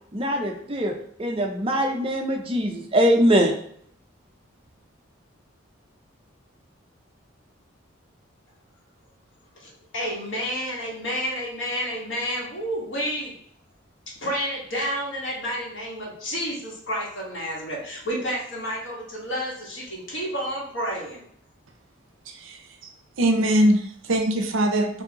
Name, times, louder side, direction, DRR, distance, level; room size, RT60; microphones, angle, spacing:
voice 1, 0.1-0.9 1.2-3.5, equal, 25° right, 2 dB, 0.5 m, -22 dB
voice 2, 9.6-13.3 14.2-21.2, equal, 65° left, -4 dB, 1.5 m, -30 dB
voice 3, 22.3-22.9 23.2-25.0, right 1 dB, 70° right, 5 dB, 0.6 m, -22 dB
5.1 x 2.6 x 2.8 m, 0.65 s
head